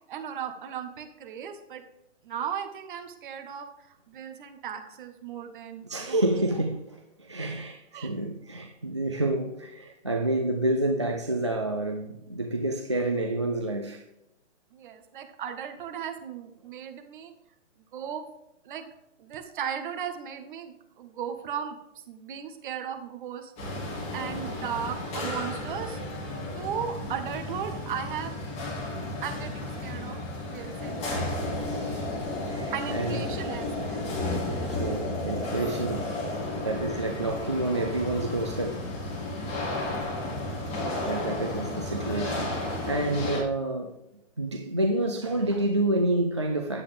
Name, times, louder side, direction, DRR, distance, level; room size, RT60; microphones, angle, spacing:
voice 1, 0.1-1.8 2.2-6.2 7.9-8.1 14.7-17.3 17.9-18.2 18.6-18.8 19.2-21.8 22.1-23.5 24.1-26.0 26.5-28.3 29.2-31.6 32.7-34.0 41.3-41.4, right 8 dB, 40° right, 1.6 m, -36 dB
voice 2, 5.9-14.0 31.7-32.1 32.4-33.2 34.7-36.1 36.6-38.8 41.1-44.0 44.4-46.8, right 2 dB, 25° right, 0.3 m, -29 dB
sound 1, 23.6-43.4, left 2 dB, 15° left, 2.4 m, -33 dB
9.8 x 8.4 x 3.5 m
hypercardioid pair, 160°, 38 cm